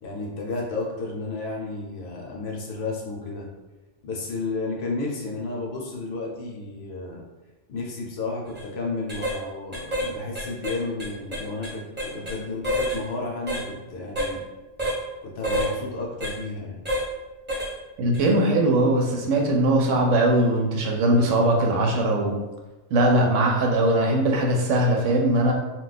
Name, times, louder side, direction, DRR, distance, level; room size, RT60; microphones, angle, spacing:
voice 1, 0.0-3.5 4.0-7.2 7.7-14.5 15.2-16.8, left 3 dB, 65° left, -2 dB, 0.8 m, -32 dB
sound 1, 8.4-8.6 9.1-9.4 9.7-10.1 10.3-12.4 12.6-13.0 13.5-13.6 14.2-14.3 14.8-15.0 15.4-15.7 16.2-16.3 16.9-17.1 17.5-17.7 18.1-18.3, equal, 10° right, 0.8 m, -28 dB
voice 2, 18.0-22.4 22.9-25.5, right 1 dB, 80° right, 0 dB, 0.9 m, -20 dB
2.2 x 2.2 x 3.9 m, 1.1 s
omnidirectional pair, 1.3 m